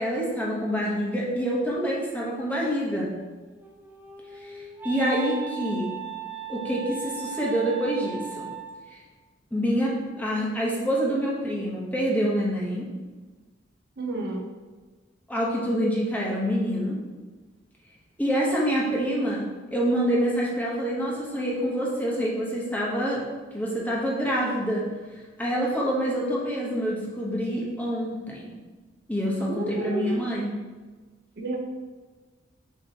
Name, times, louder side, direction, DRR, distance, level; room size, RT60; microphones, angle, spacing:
voice 1, 0.0-3.1 4.4-5.9 6.5-8.5 8.9-9.0 9.5-12.8 15.3-17.0 18.2-19.4 19.7-23.2 23.5-24.9 25.4-28.5 29.1-30.5, equal, 10° left, -5 dB, 0.8 m, -26 dB
Wind instrument woodwind instrument, 3.4-8.9, right 7 dB, 10° right, 0.3 m, -38 dB
voice 2, 14.0-14.4 29.5-30.3 31.4-31.6, right 2 dB, 55° right, 0 dB, 0.7 m, -30 dB
6.7 x 2.9 x 2.7 m, 1.3 s
head